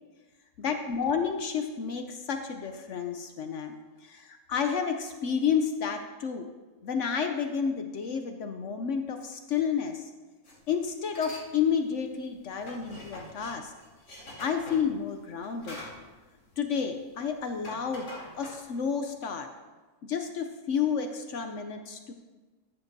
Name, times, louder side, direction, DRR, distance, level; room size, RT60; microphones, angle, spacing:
voice 1, 0.6-3.8 4.0-6.5 6.8-10.1 10.7-13.7 14.4-15.8 16.6-19.5 20.0-22.1, left 6 dB, 65° left, 6 dB, 0.8 m, -30 dB
sound 1, 10.4-10.6 11.0-11.5 11.8-17.1 17.4-19.0, left 1 dB, 85° left, 3.2 m, -45 dB
13.5 x 9.5 x 2.7 m, 1.3 s
omnidirectional pair, 1.7 m